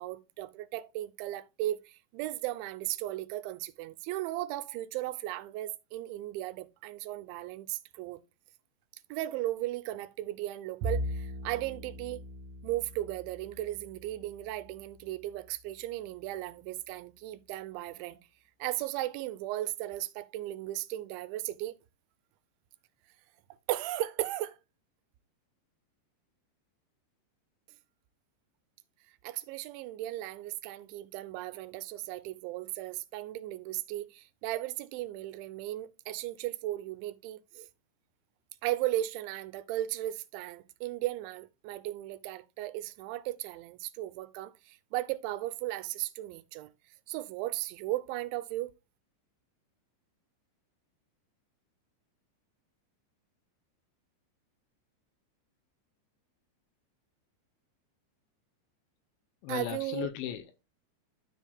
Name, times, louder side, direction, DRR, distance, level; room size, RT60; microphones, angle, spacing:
voice 1, 0.0-8.2 9.1-12.2 12.6-18.2 18.6-21.7 23.7-24.6 29.2-37.7 38.6-46.7 47.1-48.7 59.5-60.1, right 15 dB, 85° right, 2.8 m, -36 dB
Bowed string instrument, 10.8-15.4, equal, 65° right, 2.8 m, -39 dB
voice 2, 59.4-60.6, left 11 dB, 80° left, 2.9 m, -36 dB
13.0 x 4.5 x 2.2 m
omnidirectional pair, 5.4 m